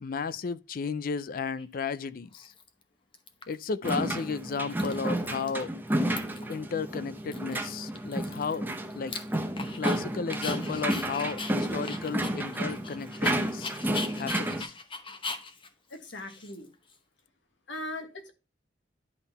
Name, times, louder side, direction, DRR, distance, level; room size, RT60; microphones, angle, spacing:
voice 1, 0.0-2.5 3.5-5.7 6.5-8.7 8.9-9.1 9.8-13.7 14.2-14.7, left 5 dB, 50° left, 0.4 m, -34 dB
Dog, 1.6-1.7 2.3-2.8 3.1-3.9 4.2-4.3 4.6-5.6 5.9-6.5 6.9-7.0 7.3-10.0 10.3-16.9, left 4 dB, 30° left, 0.9 m, -40 dB
sound 1, 3.8-14.6, right 1 dB, 10° right, 0.8 m, -31 dB
voice 2, 15.9-16.7 17.7-18.3, left 1 dB, 90° left, 1.5 m, -39 dB
11.0 x 3.8 x 4.0 m
head